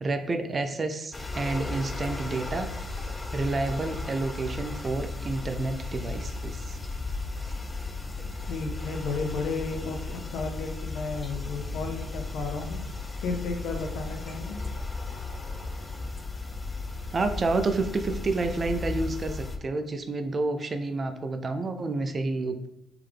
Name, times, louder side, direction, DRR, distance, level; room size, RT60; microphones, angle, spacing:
voice 1, 0.0-2.7 3.3-6.8 17.1-22.7, right 3 dB, 35° right, 8 dB, 0.5 m, -29 dB
sound 1, 1.1-19.6, left 3 dB, 20° left, 0.5 m, -35 dB
voice 2, 8.5-12.8 13.2-14.6, left 4 dB, 85° left, 3 dB, 0.6 m, -33 dB
3.5 x 3.3 x 3.5 m, 0.81 s
cardioid pair, 85°, 0 cm